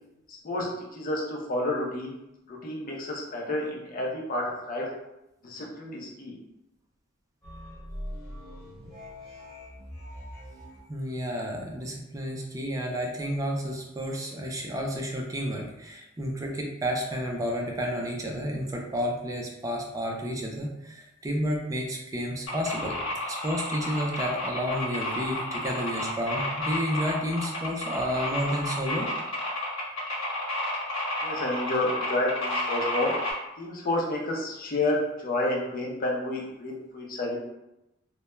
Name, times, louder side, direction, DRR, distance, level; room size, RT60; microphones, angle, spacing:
voice 1, 0.3-2.1 2.5-4.9 5.4-6.4 31.2-33.1 33.6-37.4, left 1 dB, 45° left, -2 dB, 0.5 m, -30 dB
sound 1, 7.4-10.8, equal, 10° left, 0.9 m, -42 dB
voice 2, 10.9-23.0 23.2-29.1, equal, 15° right, 0 dB, 0.4 m, -31 dB
sound 2, 22.5-33.3, left 1 dB, 85° left, 0.9 m, -31 dB
2.2 x 2.1 x 3.0 m, 0.91 s
head